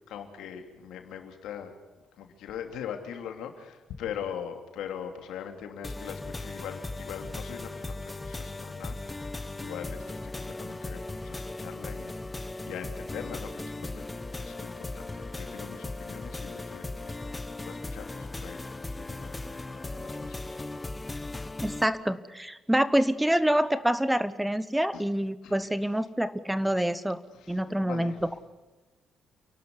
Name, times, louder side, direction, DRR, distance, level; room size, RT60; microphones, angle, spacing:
voice 1, 0.1-1.7 2.2-9.3 9.6-20.6 24.9-25.0 25.4-25.6 27.3-28.2, left 8 dB, 85° left, 5 dB, 3.0 m, -42 dB
sound 1, 5.8-21.8, left 2 dB, 20° left, 1.1 m, -38 dB
voice 2, 21.6-27.2 27.5-28.1, right 1 dB, 5° right, 15 dB, 1.0 m, -26 dB
29.0 x 12.0 x 9.8 m, 1.1 s
cardioid pair, 90°, 0 cm